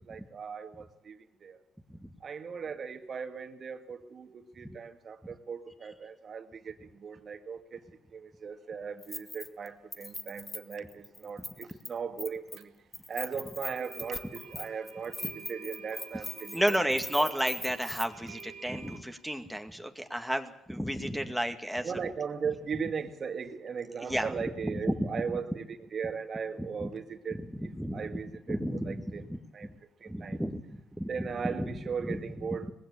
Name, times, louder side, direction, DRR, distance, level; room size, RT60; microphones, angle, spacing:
voice 1, 0.1-1.6 2.2-7.8 8.1-12.7 13.1-16.8 17.2-17.3 21.8-29.3 29.5-29.7 30.0-30.4 31.1-32.7, right 6 dB, 50° right, 7 dB, 2.0 m, -38 dB
Keys jangling, 9.0-9.7 9.9-11.9 12.2-12.6 12.9-18.1 18.4-18.5, left 2 dB, 20° left, 1.4 m, -40 dB
sound 1, 12.6-12.7 13.6-19.0, right 7 dB, 75° right, 1.6 m, -49 dB
voice 2, 16.5-21.9 24.0-24.3 24.9-25.1 26.8-26.9 27.3-28.2 28.5-29.4 30.1-31.1 31.4-31.7, equal, ahead, 7 dB, 2.1 m, -32 dB
19.5 x 16.0 x 8.7 m, 0.84 s
hypercardioid pair, 50°, 0 cm